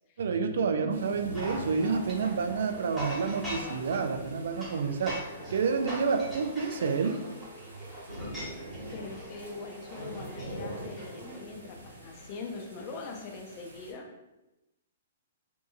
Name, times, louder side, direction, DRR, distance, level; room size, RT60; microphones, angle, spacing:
voice 1, 0.2-5.3 5.5-7.2, right 5 dB, 70° right, 7 dB, 0.3 m, -29 dB
voice 2, 0.8-1.1 8.9-14.1, left 4 dB, 40° left, 1 dB, 0.5 m, -42 dB
sound 1, 0.9-13.9, equal, 85° right, 0.9 m, -45 dB
sound 2, 1.3-11.4, equal, ahead, 1.2 m, -42 dB
2.6 x 2.6 x 2.4 m, 0.98 s
hypercardioid pair, 130°, 0 cm